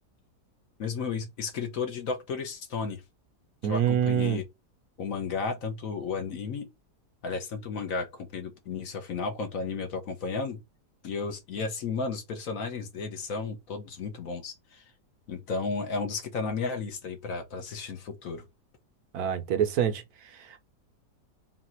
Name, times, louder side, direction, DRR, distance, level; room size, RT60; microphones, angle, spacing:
voice 1, 0.8-3.0 3.6-4.5 5.0-6.7 7.2-10.6 11.0-14.8 15.3-18.4, left 4 dB, 60° left, 1.1 m, -33 dB
voice 2, 3.6-4.4 19.1-20.0 20.4-20.6, right 9 dB, 70° right, 1.1 m, -26 dB
4.1 x 2.4 x 4.2 m
omnidirectional pair, 1.8 m